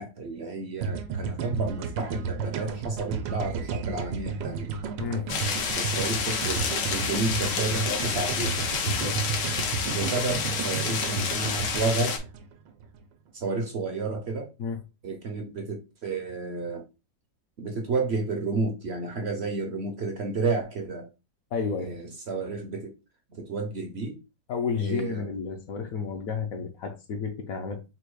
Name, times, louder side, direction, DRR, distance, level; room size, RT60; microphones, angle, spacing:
voice 1, 0.0-4.7 5.7-6.6 6.9-8.6 9.8-12.2 13.3-14.5 15.0-16.8 17.6-21.1 21.8-22.9 23.3-24.2 24.8-25.3, right 3 dB, 60° right, 0.7 m, -31 dB
sound 1, 0.8-13.0, right 6 dB, 90° right, 1.3 m, -33 dB
sound 2, 5.3-12.2, left 5 dB, 85° left, 1.5 m, -29 dB
voice 2, 8.9-9.3 14.6-14.8 21.5-21.9 24.5-27.8, left 5 dB, 65° left, 0.9 m, -31 dB
4.1 x 2.3 x 4.6 m
omnidirectional pair, 1.9 m